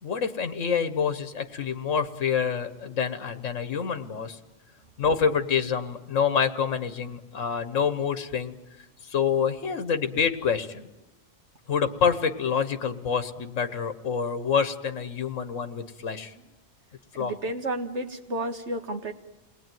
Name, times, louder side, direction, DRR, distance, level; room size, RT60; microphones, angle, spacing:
voice 1, 0.0-4.4 5.0-8.6 9.0-10.9 11.7-16.3 17.1-17.3, left 6 dB, 85° left, 10 dB, 1.5 m, -27 dB
voice 2, 17.2-19.1, right 1 dB, 65° right, 5 dB, 1.9 m, -31 dB
29.0 x 20.0 x 9.2 m, 1.1 s
omnidirectional pair, 1.3 m